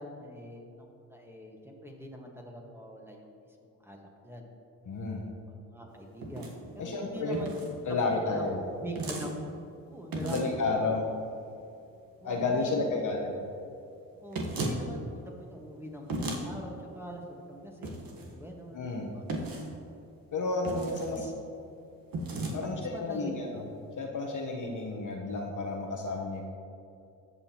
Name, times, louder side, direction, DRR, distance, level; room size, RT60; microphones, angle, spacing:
voice 1, 0.0-4.5 5.5-6.6 6.8-7.7 8.3-9.5 9.9-10.7 12.2-13.1 14.2-15.0 15.4-19.3 21.1-21.3 22.7-23.3, equal, 5° right, 0 dB, 1.5 m, -44 dB
voice 2, 4.9-5.2 6.8-7.4 7.9-8.6 10.2-11.0 12.2-13.3 18.7-19.1 20.3-21.2 22.5-23.6 24.0-26.4, left 3 dB, 45° left, 0 dB, 1.2 m, -31 dB
sound 1, 6.2-6.5 7.3-7.7 9.0-9.3 10.1-10.6 14.3-14.8 16.1-16.4 17.8-18.3 19.3-19.7 20.6-21.2 22.1-22.6, right 2 dB, 50° right, 1.4 m, -34 dB
14.5 x 5.5 x 3.0 m, 2.5 s
hypercardioid pair, 55°, 44 cm